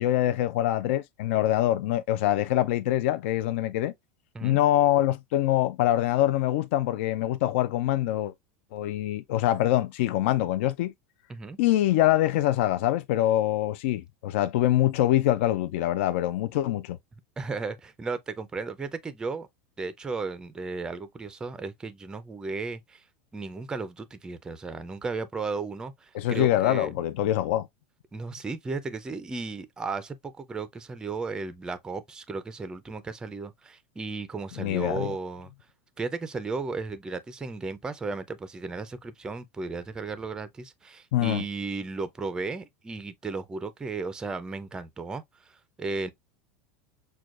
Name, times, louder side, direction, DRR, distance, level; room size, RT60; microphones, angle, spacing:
voice 1, 0.0-3.9 4.4-8.3 8.7-10.9 11.6-17.0 26.1-27.7 34.6-35.1 41.1-41.4, left 13 dB, 65° left, 0.4 m, -24 dB
voice 2, 17.4-19.5 19.8-23.0 23.3-26.9 28.1-35.5 36.0-46.1, right 4 dB, 10° right, 0.4 m, -35 dB
6.2 x 2.2 x 2.4 m
supercardioid pair, 155°, 7 cm